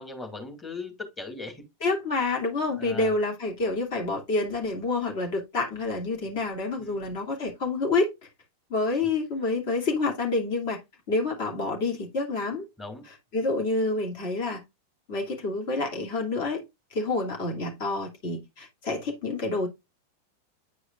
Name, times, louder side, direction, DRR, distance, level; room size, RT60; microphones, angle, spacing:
voice 1, 0.0-1.6 2.8-3.1 6.8-7.1 12.8-13.0, left 3 dB, 15° left, 2.2 m, -39 dB
voice 2, 1.8-8.1 8.7-10.8 11.1-12.6 13.1-14.6 15.1-16.6 16.9-19.7, left 3 dB, 50° left, 2.7 m, -28 dB
9.6 x 4.8 x 2.4 m
figure-of-eight pair, 90°, 0 cm